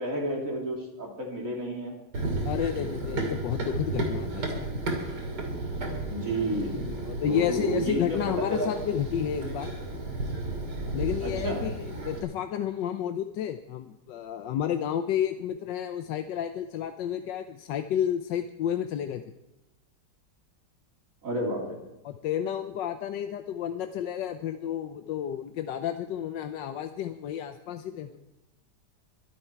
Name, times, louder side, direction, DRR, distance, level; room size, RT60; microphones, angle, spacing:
voice 1, 0.0-2.0 2.7-3.1 6.1-6.8 7.3-8.7 11.2-11.7 21.2-21.8, right 1 dB, 45° right, -1 dB, 3.6 m, -31 dB
Run, 2.1-12.2, right 2 dB, 65° right, 3.1 m, -33 dB
voice 2, 2.4-4.7 6.7-9.8 10.9-19.2 22.0-28.2, left 9 dB, 85° left, 8 dB, 1.4 m, -31 dB
23.0 x 9.8 x 4.6 m, 0.95 s
omnidirectional pair, 1.9 m